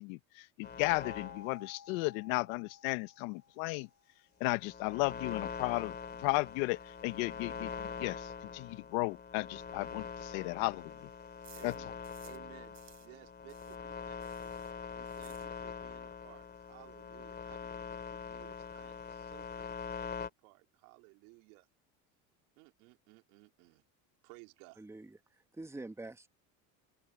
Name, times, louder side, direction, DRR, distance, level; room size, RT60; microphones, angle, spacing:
voice 1, 0.0-3.9 4.4-11.1 11.6-11.7, left 24 dB, 75° left, 1.2 m, -35 dB
sound 1, 0.6-1.5 4.5-20.3, left 6 dB, 25° left, 2.8 m, -44 dB
sound 2, 1.0-4.0, left 6 dB, 45° left, 2.9 m, -54 dB
sound 3, 9.6-12.5 12.7-15.9 16.2-16.3 16.6-16.7 16.9-17.4, right 10 dB, 40° right, 6.4 m, -62 dB
voice 2, 11.5-11.9 12.2-14.2 14.9-21.7 22.6-23.8 24.2-24.8, right 28 dB, 75° right, 3.4 m, -58 dB
voice 3, 24.8-26.3, right 2 dB, 5° right, 1.4 m, -46 dB
open air
supercardioid pair, 110°, 41 cm